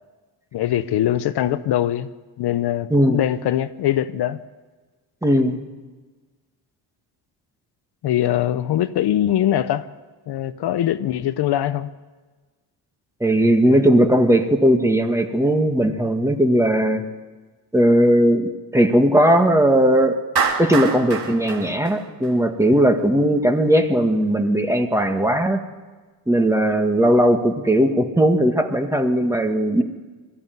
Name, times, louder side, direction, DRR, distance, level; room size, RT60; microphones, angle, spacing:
voice 1, 0.5-2.1 2.4-4.4 8.0-9.9 10.3-11.9, left 12 dB, 70° left, 0.9 m, -22 dB
voice 2, 5.2-5.6 13.2-17.0 17.7-20.2 20.6-25.6 26.3-29.8, right 1 dB, 5° right, 1.9 m, -18 dB
Clapping, 20.4-22.7, right 5 dB, 65° right, 3.3 m, -25 dB
21.5 x 14.5 x 9.5 m
cardioid pair, 110°, 41 cm